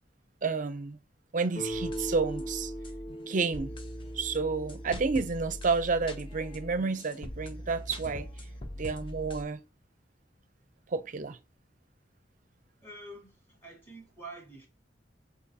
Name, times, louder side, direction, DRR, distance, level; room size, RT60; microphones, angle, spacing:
voice 1, 0.4-1.0 1.3-2.7 3.3-3.7 4.2-8.3 8.8-9.6 10.9-11.4, right 4 dB, 45° right, 0.5 m, -30 dB
Guitar, 1.5-6.3, right 1 dB, 70° left, 1.7 m, -40 dB
sound 1, 1.7-9.4, left 1 dB, 30° left, 0.6 m, -42 dB
voice 2, 12.8-14.7, right 2 dB, 15° left, 1.6 m, -47 dB
6.1 x 2.8 x 2.7 m
head